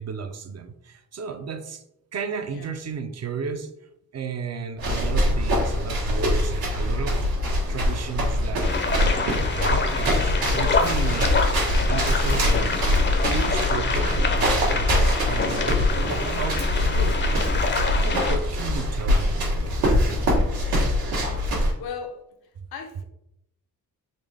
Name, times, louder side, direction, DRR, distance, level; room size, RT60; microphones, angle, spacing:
voice 1, 0.0-1.8 2.1-3.7 4.1-7.2 7.7-8.8 9.0-11.4 11.9-12.8 13.2-17.7 18.0-19.8 22.6-22.7, right 6 dB, 45° right, 0.4 m, -34 dB
sound 1, 4.8-21.7, left 1 dB, 85° right, 1.4 m, -23 dB
sound 2, 8.6-18.4, left 4 dB, 30° left, 0.5 m, -27 dB
voice 2, 21.0-21.4 21.8-22.3 22.7-23.0, left 6 dB, 90° left, 0.7 m, -37 dB
4.1 x 3.1 x 3.3 m
wide cardioid pair, 155°, 36 cm